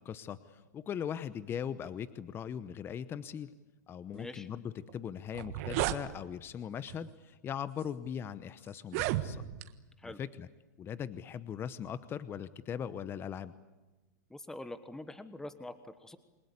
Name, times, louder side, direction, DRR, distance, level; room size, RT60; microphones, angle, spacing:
voice 1, 0.0-3.5 3.9-9.4 10.0-10.5 10.8-13.5, left 8 dB, 25° left, 14 dB, 0.9 m, -40 dB
voice 2, 4.1-4.5 10.0-10.2 14.3-16.2, left 2 dB, 5° left, 11 dB, 1.3 m, -45 dB
sound 1, 4.9-5.0 5.3-6.0 6.9-7.1 7.8-7.9 8.8-9.7, right 15 dB, 50° right, 1.5 m, -33 dB
29.0 x 22.0 x 8.3 m, 1.1 s
hypercardioid pair, 120°, 10 cm